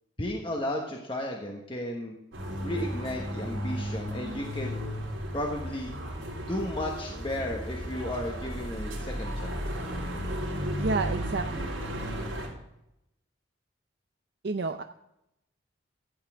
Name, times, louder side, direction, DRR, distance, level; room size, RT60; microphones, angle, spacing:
voice 1, 0.2-2.1 2.6-4.8 5.3-5.9 6.5-9.6, left 1 dB, 25° left, 0 dB, 1.3 m, -34 dB
sound 1, 2.3-12.5, equal, 85° right, 3.8 m, -34 dB
voice 2, 10.8-11.7 14.4-14.8, right 3 dB, 55° right, 6 dB, 0.5 m, -30 dB
14.0 x 8.3 x 3.6 m, 0.84 s
head